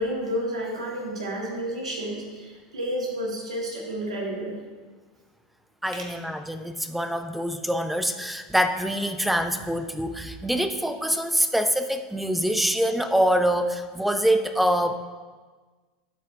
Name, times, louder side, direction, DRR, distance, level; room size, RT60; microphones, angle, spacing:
voice 1, 0.0-4.6 5.9-6.1, equal, 85° right, -2 dB, 2.0 m, -31 dB
voice 2, 5.8-14.9, equal, 5° right, 8 dB, 0.6 m, -25 dB
12.0 x 4.5 x 3.7 m, 1.4 s
hypercardioid pair, 90°, 3 cm